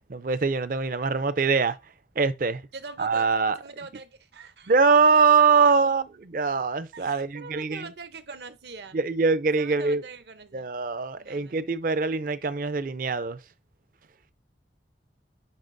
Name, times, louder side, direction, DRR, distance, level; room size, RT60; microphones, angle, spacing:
voice 1, 0.1-1.8 2.2-2.6 3.0-3.6 4.7-7.9 8.9-10.0 10.5-13.4, right 5 dB, 50° right, 0.5 m, -23 dB
voice 2, 2.7-3.3 3.6-4.7 5.2-5.8 6.9-9.0 9.6-10.7 11.2-11.6, right 4 dB, 70° right, 0.8 m, -42 dB
9.6 x 4.0 x 2.6 m
head